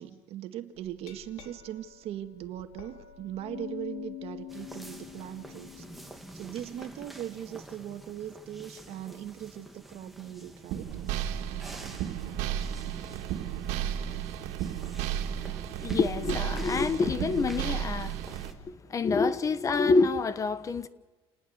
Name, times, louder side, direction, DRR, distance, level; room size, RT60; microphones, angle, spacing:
voice 1, 0.0-10.9, right 11 dB, 65° right, 1.9 m, -40 dB
Glass, 0.8-6.9, left 11 dB, 90° left, 4.1 m, -45 dB
sound 1, 4.5-18.5, right 1 dB, ahead, 2.4 m, -48 dB
sound 2, 10.7-18.5, right 10 dB, 90° right, 2.3 m, -33 dB
voice 2, 15.4-20.9, left 4 dB, 30° left, 1.1 m, -27 dB
29.0 x 19.5 x 8.0 m
cardioid pair, 140°, 11 cm